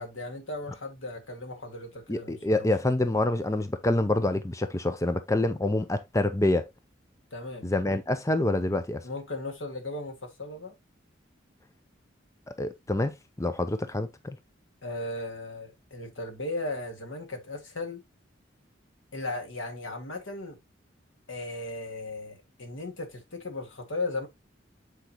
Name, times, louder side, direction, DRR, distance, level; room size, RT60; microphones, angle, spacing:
voice 1, 0.0-2.7 7.3-7.7 9.0-10.7 14.8-18.0 19.1-20.6 21.3-24.3, left 2 dB, 85° left, 2.0 m, -36 dB
voice 2, 2.1-6.7 7.6-9.0 12.5-14.4, left 2 dB, 15° left, 0.5 m, -27 dB
8.2 x 4.6 x 3.0 m
head